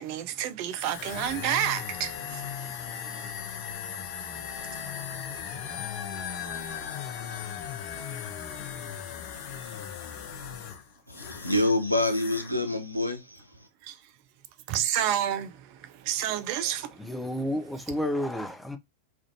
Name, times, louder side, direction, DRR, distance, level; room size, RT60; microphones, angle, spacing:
voice 1, 0.0-2.1 13.9-14.0 14.7-15.5 16.1-16.9, right 11 dB, 45° right, 0.5 m, -28 dB
sound 1, 0.7-11.7 12.0-12.5, left 8 dB, 45° left, 0.6 m, -37 dB
voice 2, 11.1-13.4, left 1 dB, 90° left, 0.5 m, -27 dB
voice 3, 17.0-18.8, left 1 dB, 5° left, 0.6 m, -31 dB
3.4 x 2.5 x 2.6 m
figure-of-eight pair, 90°, 0 cm